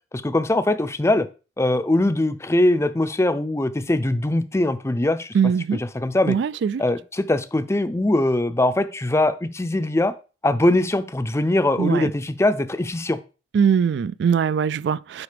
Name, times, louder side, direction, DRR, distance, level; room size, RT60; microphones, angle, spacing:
voice 1, 0.1-1.3 1.6-5.3 5.7-6.4 6.8-10.1 10.4-13.2, left 1 dB, 15° left, 0.5 m, -21 dB
voice 2, 5.3-5.8 6.3-6.8 11.8-12.1 13.5-15.2, right 7 dB, 75° right, 0.3 m, -21 dB
9.6 x 4.8 x 3.4 m
head